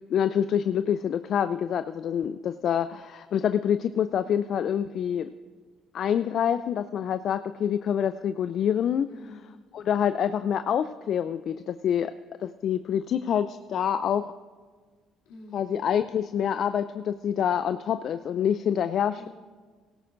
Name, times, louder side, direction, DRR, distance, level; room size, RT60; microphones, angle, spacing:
voice 1, 0.0-5.3 5.9-9.1 9.7-12.1 12.4-14.3 15.5-19.3, left 9 dB, 60° left, 12 dB, 0.4 m, -26 dB
voice 2, 9.1-9.6 15.3-15.7 19.2-19.3, left 2 dB, 80° left, -2 dB, 2.8 m, -47 dB
18.0 x 16.5 x 2.6 m, 1.5 s
hypercardioid pair, 60°, 0 cm